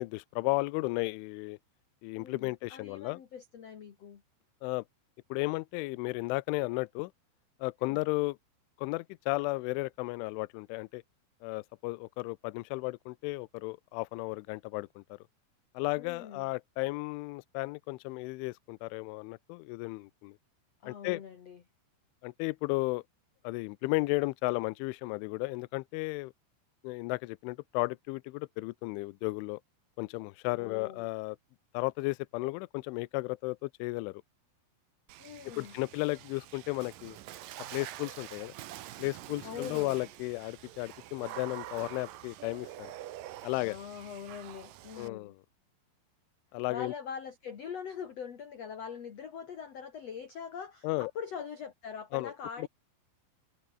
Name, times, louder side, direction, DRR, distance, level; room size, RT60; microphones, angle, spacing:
voice 1, 0.0-1.6 2.0-3.2 4.6-4.8 5.3-7.1 7.6-8.4 8.8-11.0 11.4-15.2 15.7-20.4 20.9-21.2 22.2-23.0 23.4-26.3 26.8-29.6 30.0-31.4 31.7-34.2 35.6-37.2 37.7-38.5 39.0-42.9 43.4-43.8 45.0-45.3 46.5-46.9 50.8-51.1 52.1-52.3 52.6-52.7, left 24 dB, 80° left, 3.0 m, -34 dB
voice 2, 2.1-4.2 16.0-16.5 20.8-21.6 30.5-31.1 35.2-35.8 39.4-40.1 43.5-45.3 46.7-52.7, left 7 dB, 50° left, 2.0 m, -43 dB
Water / Splash splatter, 35.1-45.1, right 14 dB, 85° right, 1.9 m, -46 dB
omnidirectional pair, 5.7 m